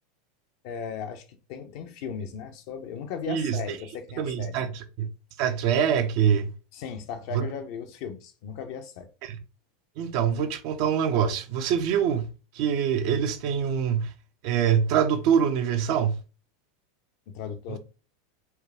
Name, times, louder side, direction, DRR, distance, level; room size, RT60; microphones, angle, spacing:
voice 1, 0.6-4.7 6.7-9.1 17.3-17.8, left 7 dB, 60° left, 0.8 m, -37 dB
voice 2, 3.3-3.6 4.2-5.1 5.4-6.5 7.3-7.5 9.2-9.4 10.0-12.3 12.5-14.1 14.4-16.2 17.7-17.8, right 8 dB, 60° right, 0.6 m, -24 dB
4.4 x 2.4 x 3.4 m
hypercardioid pair, 90°, 0 cm